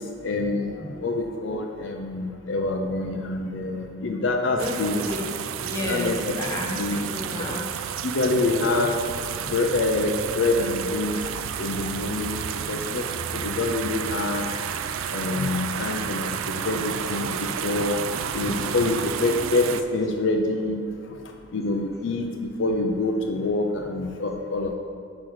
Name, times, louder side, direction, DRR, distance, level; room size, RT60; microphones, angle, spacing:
voice 1, 0.2-5.0 5.8-6.3 6.6-7.0 7.3-7.5 8.0-8.9 9.5-11.1 11.6-13.0 13.3-14.5 15.1-18.0 18.3-20.8 21.5-24.7, left 2 dB, 60° left, 3 dB, 0.5 m, -26 dB
voice 2, 4.5-5.3 5.6-7.9, left 1 dB, 15° left, -2 dB, 0.8 m, -32 dB
sound 1, 4.6-19.8, right 8 dB, 75° right, 0.3 m, -31 dB
6.1 x 4.8 x 6.3 m, 2.5 s
head